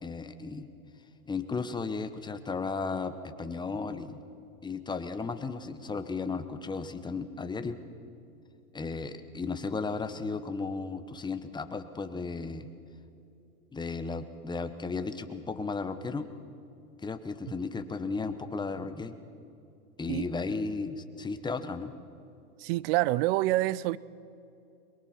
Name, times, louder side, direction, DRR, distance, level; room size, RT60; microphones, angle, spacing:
voice 1, 0.0-0.7 1.3-4.2 4.6-7.8 8.7-12.7 13.7-16.3 17.0-19.1 20.0-21.9, left 4 dB, 10° left, 1.0 m, -34 dB
voice 2, 22.6-24.0, right 17 dB, 40° right, 0.5 m, -27 dB
22.5 x 22.5 x 5.9 m
hypercardioid pair, 115°, 45 cm